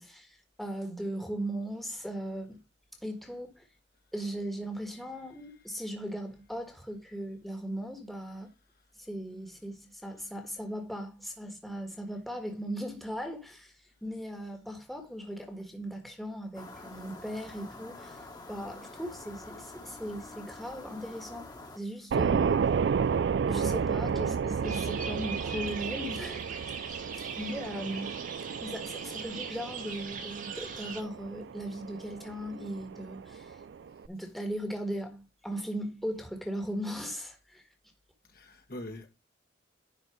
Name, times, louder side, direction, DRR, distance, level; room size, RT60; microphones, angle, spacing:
voice 1, 0.0-2.6 3.0-3.7 4.1-8.5 9.0-13.7 14.0-22.6 23.5-27.0 27.3-28.1 28.6-33.6 34.1-37.6, equal, ahead, 1.5 m, -38 dB
sound 1, 16.5-21.8, left 2 dB, 20° left, 1.5 m, -47 dB
sound 2, 22.1-34.1, right 6 dB, 65° right, 0.3 m, -32 dB
sound 3, 24.6-31.0, right 5 dB, 45° right, 1.5 m, -40 dB
voice 2, 38.3-39.1, left 1 dB, 50° left, 1.7 m, -43 dB
10.5 x 4.3 x 4.9 m
head